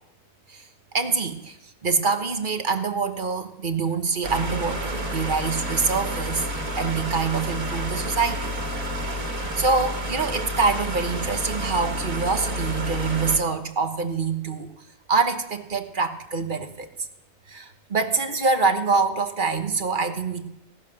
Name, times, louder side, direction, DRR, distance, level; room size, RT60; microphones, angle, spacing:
voice 1, 0.9-1.6 1.8-6.5 6.8-8.5 9.1-9.2 9.5-14.7 15.1-17.1 17.5-20.5, right 4 dB, 40° right, 7 dB, 1.3 m, -25 dB
sound 1, 4.2-13.4, equal, 75° right, 2.6 m, -30 dB
17.5 x 11.5 x 6.5 m, 0.82 s
omnidirectional pair, 1.4 m